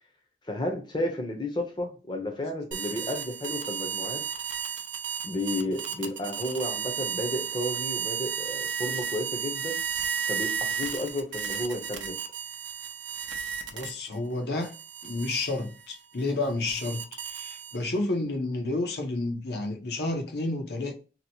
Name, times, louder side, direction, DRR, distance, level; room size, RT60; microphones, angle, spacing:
voice 1, 0.5-4.2 5.2-9.8 10.3-12.2, left 1 dB, 25° left, 0.7 m, -32 dB
sound 1, 2.7-14.2 14.6-18.0, right 7 dB, 90° right, 0.5 m, -33 dB
voice 2, 13.7-14.7 15.0-20.9, left 2 dB, 60° left, 0.7 m, -30 dB
2.9 x 2.0 x 4.0 m
head